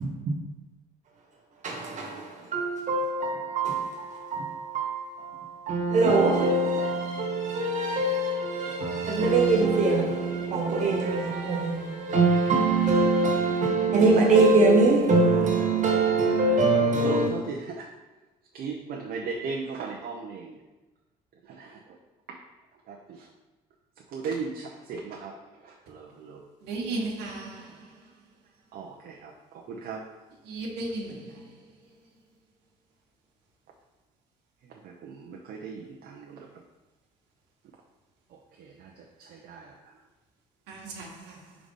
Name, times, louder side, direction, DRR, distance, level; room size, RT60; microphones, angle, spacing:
voice 1, 0.0-0.3 1.6-2.1 2.5-5.3 5.7-17.3, right 3 dB, 45° right, 1.5 m, -23 dB
voice 2, 15.3-15.7 16.7-17.9 18.5-20.5 21.5-21.7 22.9-23.0 24.1-25.3 25.6-26.4 27.0-27.1 28.7-29.3 29.7-30.0 34.8-36.4 38.6-38.9 39.2-39.7, right 4 dB, 65° right, 0.8 m, -36 dB
voice 3, 26.6-27.6 30.5-31.2 40.7-41.1, right 2 dB, 90° right, 1.3 m, -33 dB
4.8 x 3.9 x 5.4 m
cardioid pair, 110°, 17 cm